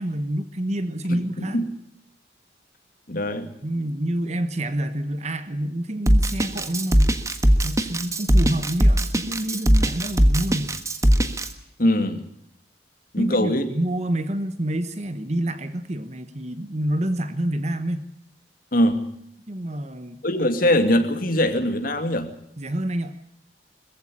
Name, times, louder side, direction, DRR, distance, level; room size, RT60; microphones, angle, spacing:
voice 1, 0.0-1.7 3.6-10.8 13.2-18.1 19.5-20.2 22.6-23.2, right 1 dB, 40° right, 11 dB, 1.1 m, -28 dB
voice 2, 1.1-1.7 3.1-3.5 11.8-12.3 13.1-13.7 18.7-19.1 20.2-22.3, left 1 dB, 50° left, 6 dB, 2.4 m, -22 dB
Drum kit, 6.1-11.5, equal, 20° right, 1.4 m, -19 dB
21.5 x 15.0 x 10.0 m, 0.74 s
head